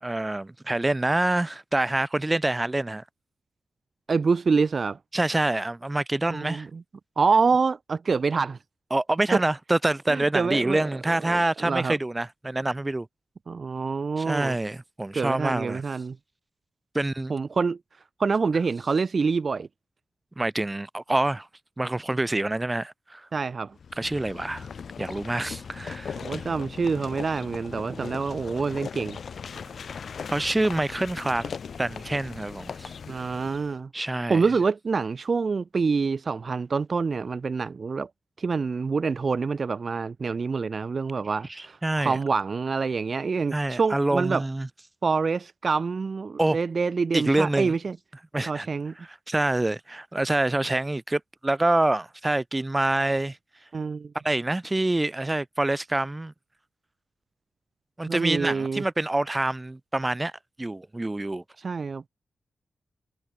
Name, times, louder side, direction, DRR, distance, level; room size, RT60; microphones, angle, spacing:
voice 1, 0.0-3.0 5.1-6.7 8.9-13.1 14.2-15.8 16.9-17.4 20.4-21.5 21.8-23.3 24.0-24.7 25.0-26.4 30.3-31.5 31.8-32.9 33.9-34.5 41.5-42.2 43.5-44.7 46.4-46.6 47.1-47.8 48.3-48.7 49.0-53.4 54.2-56.3 58.0-60.3 60.6-61.4, right 2 dB, 15° right, 2.0 m, -26 dB
voice 2, 4.1-5.0 6.3-6.8 7.2-8.6 9.3-9.4 10.1-10.9 11.2-12.0 13.5-14.6 15.1-16.2 17.3-17.8 18.2-19.7 23.3-23.7 26.2-29.2 33.1-38.1 38.4-44.4 45.0-48.0 48.5-48.9 53.7-54.1 58.1-58.8 61.6-62.1, right 4 dB, 45° right, 0.6 m, -26 dB
sound 1, 23.8-33.7, left 6 dB, 60° left, 7.1 m, -39 dB
wide cardioid pair, 130°, 0 cm